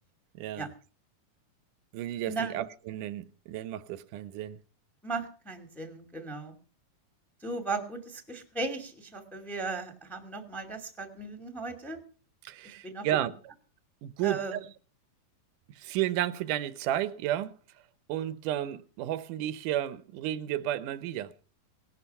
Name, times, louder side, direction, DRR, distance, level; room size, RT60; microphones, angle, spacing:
voice 1, 0.3-0.7 1.9-4.6 12.4-13.3 14.0-14.6 15.8-17.5 18.1-21.3, right 12 dB, 75° right, 2.3 m, -32 dB
voice 2, 2.3-2.6 5.0-6.6 7.4-12.0 12.6-13.1 14.2-14.6, right 3 dB, ahead, 1.9 m, -36 dB
19.0 x 12.0 x 5.5 m
omnidirectional pair, 3.9 m